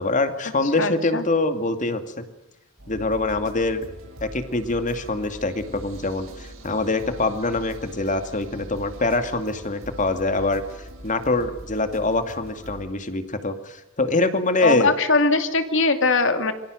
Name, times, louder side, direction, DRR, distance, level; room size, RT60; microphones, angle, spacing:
voice 1, 0.0-2.2 2.9-3.8 4.2-10.6 11.0-14.9, left 2 dB, 40° left, 8 dB, 2.5 m, -24 dB
voice 2, 0.8-1.2 14.6-16.5, left 3 dB, 65° left, 8 dB, 2.6 m, -21 dB
sound 1, 2.8-12.8, right 1 dB, 85° right, 6.8 m, -42 dB
27.5 x 24.0 x 6.6 m, 0.87 s
head